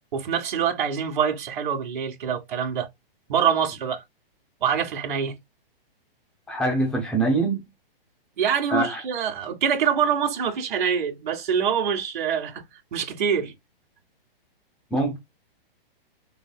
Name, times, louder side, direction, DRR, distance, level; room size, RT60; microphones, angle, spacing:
voice 1, 0.1-2.9 3.3-4.0 4.6-5.4 8.4-12.6 12.9-13.5, right 7 dB, 55° right, 1.8 m, -25 dB
voice 2, 6.5-7.7 8.7-9.0 14.9-15.2, right 2 dB, 5° left, 0.6 m, -24 dB
5.8 x 3.5 x 2.2 m
hypercardioid pair, 170°, 29 cm